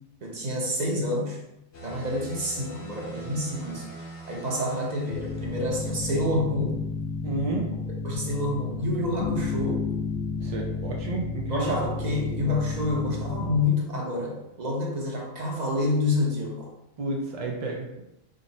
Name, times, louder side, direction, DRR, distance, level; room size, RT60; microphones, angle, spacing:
voice 1, 0.2-1.4 1.8-3.9 4.3-6.8 8.0-9.9 11.5-16.7, left 2 dB, 40° right, -1 dB, 0.8 m, -28 dB
sound 1, 1.7-6.2, right 2 dB, 60° left, 1.1 m, -43 dB
sound 2, 5.1-13.6, left 4 dB, 75° left, 0.4 m, -32 dB
voice 2, 7.2-7.7 10.4-11.8 17.0-18.0, right 2 dB, 65° right, 0 dB, 0.3 m, -31 dB
3.7 x 2.5 x 4.0 m, 0.88 s
omnidirectional pair, 1.4 m